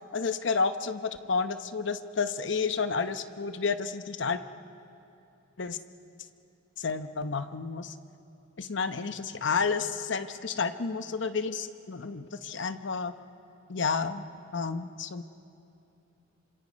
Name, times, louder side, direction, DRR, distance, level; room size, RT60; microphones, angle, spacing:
voice 1, 0.1-4.4 5.6-5.8 6.8-7.9 8.6-13.1 13.7-14.3 14.5-15.2, left 5 dB, 65° left, 10 dB, 0.8 m, -30 dB
27.0 x 26.0 x 5.4 m, 2.7 s
head